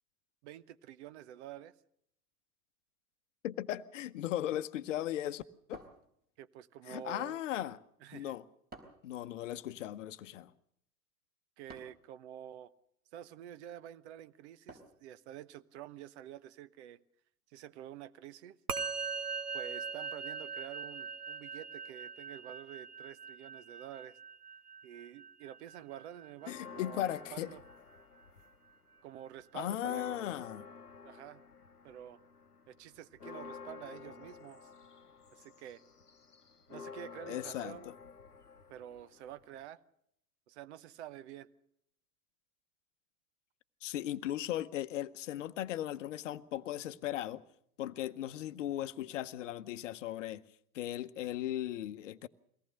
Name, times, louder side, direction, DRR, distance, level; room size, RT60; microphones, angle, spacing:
voice 1, 0.4-1.7 6.4-7.4 8.0-8.4 11.6-12.7 13.1-17.0 17.5-18.6 19.5-24.2 24.8-27.6 29.0-30.0 31.0-31.4 31.8-32.2 32.7-34.7 35.3-35.8 36.7-37.9 38.7-39.8 40.5-41.5, right 11 dB, 45° right, 1.0 m, -49 dB
voice 2, 3.4-5.4 5.7-5.8 6.9-7.8 8.1-8.4 9.0-10.5 26.5-27.5 29.5-30.7 37.3-37.8 43.8-47.4 47.8-50.4 50.7-52.3, left 12 dB, 55° left, 0.9 m, -37 dB
sound 1, 5.7-6.6 8.7-9.2 11.7-12.1 14.7-15.1, right 2 dB, 20° right, 4.0 m, -53 dB
Musical instrument, 18.7-28.2, right 5 dB, 85° right, 1.1 m, -42 dB
sound 2, 26.4-28.8 29.1-39.6, left 5 dB, 85° left, 0.9 m, -51 dB
23.5 x 18.0 x 6.5 m
figure-of-eight pair, 90°, 45 cm